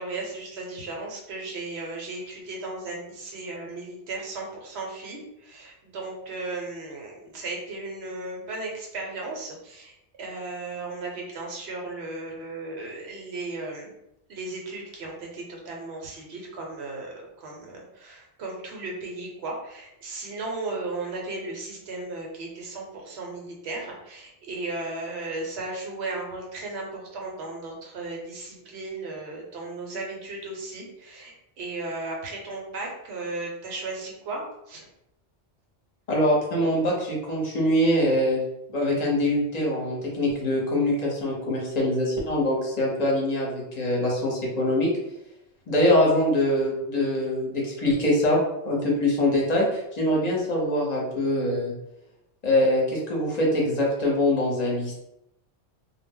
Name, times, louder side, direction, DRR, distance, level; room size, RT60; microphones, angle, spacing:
voice 1, 0.0-9.9 10.2-13.9 14.3-34.9, right 2 dB, 75° right, -1 dB, 0.9 m, -35 dB
voice 2, 36.1-38.4 38.7-44.9 45.7-48.4 48.6-51.7 52.4-54.9, left 1 dB, 45° left, -3 dB, 0.8 m, -23 dB
2.1 x 2.0 x 3.5 m, 0.84 s
omnidirectional pair, 1.1 m